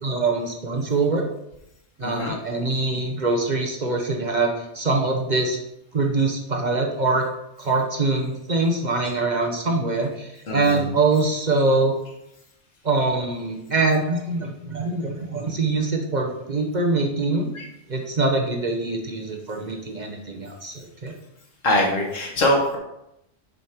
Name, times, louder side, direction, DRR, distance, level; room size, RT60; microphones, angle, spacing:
voice 1, 0.0-1.3 2.0-5.6 5.9-7.3 7.6-12.0 12.8-17.5 17.9-21.1, right 3 dB, 40° right, 1 dB, 0.9 m, -23 dB
voice 2, 2.0-2.4 10.5-10.9 17.5-17.7 21.6-22.8, left 1 dB, 85° left, 0 dB, 1.8 m, -22 dB
6.4 x 5.0 x 4.4 m, 0.85 s
omnidirectional pair, 1.3 m